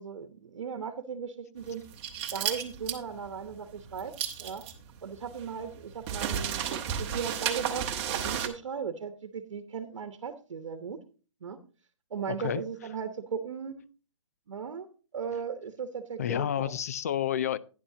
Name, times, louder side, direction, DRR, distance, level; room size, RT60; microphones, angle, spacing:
voice 1, 0.0-1.8 2.3-4.1 4.4-4.6 5.0-11.0 11.4-11.6 12.1-13.9 14.5-14.9 15.1-16.7, right 6 dB, 65° right, 1.1 m, -37 dB
sound 1, 1.6-8.5, right 8 dB, 20° right, 1.1 m, -33 dB
voice 2, 12.3-12.6 16.2-17.6, left 10 dB, 30° left, 0.3 m, -30 dB
11.5 x 10.0 x 2.8 m
hypercardioid pair, 160°, 16 cm